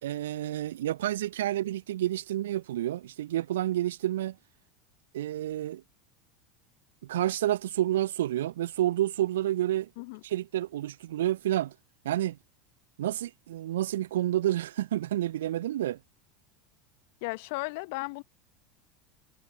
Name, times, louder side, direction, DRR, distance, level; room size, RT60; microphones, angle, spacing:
voice 1, 0.0-4.4 5.1-5.8 7.0-9.9 10.2-11.7 12.0-12.4 13.0-16.0, right 13 dB, 65° right, 0.8 m, -29 dB
voice 2, 17.2-18.2, left 27 dB, 55° left, 1.1 m, -35 dB
figure-of-eight pair, 75°, 0 cm